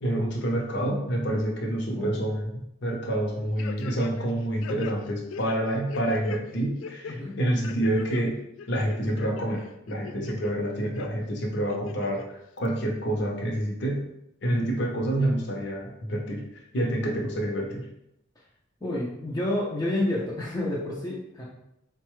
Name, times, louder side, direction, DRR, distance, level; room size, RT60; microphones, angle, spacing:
voice 1, 0.0-2.5 2.8-8.4 8.7-12.2 12.6-14.1 14.4-16.4 16.7-17.9, right 1 dB, 60° left, -1 dB, 0.7 m, -28 dB
sound 1, 3.6-4.3 4.6-6.4 6.8-7.1 7.6-8.2 8.6-9.4 9.9-10.5 10.9-11.1 11.7-12.3 12.6-12.7, left 6 dB, 80° left, 0.3 m, -39 dB
voice 2, 18.8-21.4, left 1 dB, 20° left, -8 dB, 0.5 m, -29 dB
4.0 x 2.2 x 3.0 m, 0.81 s
head